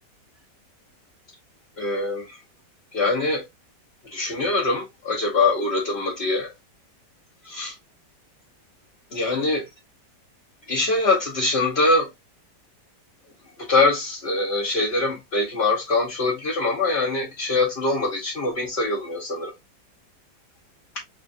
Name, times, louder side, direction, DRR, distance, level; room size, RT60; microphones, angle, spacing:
voice 1, 1.8-2.4 2.9-3.4 4.1-6.5 7.4-7.7 9.1-9.7 10.7-12.1 13.7-19.5, left 2 dB, 45° left, 1.0 m, -23 dB
3.5 x 3.1 x 2.5 m
omnidirectional pair, 1.9 m